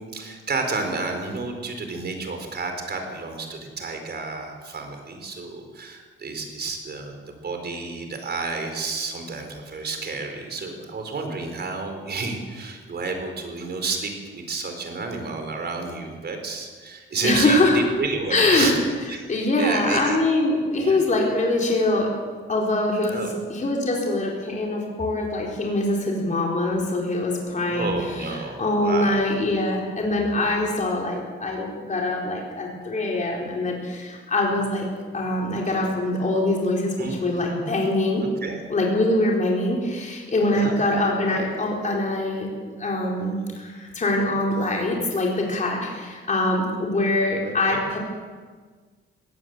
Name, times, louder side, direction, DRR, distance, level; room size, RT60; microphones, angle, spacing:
voice 1, 0.0-18.8 19.1-19.3 19.6-20.2 20.8-21.0 23.1-23.4 27.7-29.3 37.0-37.2 38.2-38.6 40.5-40.8 41.2-41.3 47.4-47.8, right 3 dB, 50° right, 5 dB, 4.5 m, -30 dB
voice 2, 17.2-17.8 18.3-18.7 19.3-22.1 22.5-34.9 35.1-38.2 38.7-42.5 42.8-48.0, left 2 dB, 35° left, -2 dB, 4.4 m, -23 dB
21.0 x 17.0 x 8.0 m, 1.5 s
cardioid pair, 115°, 21 cm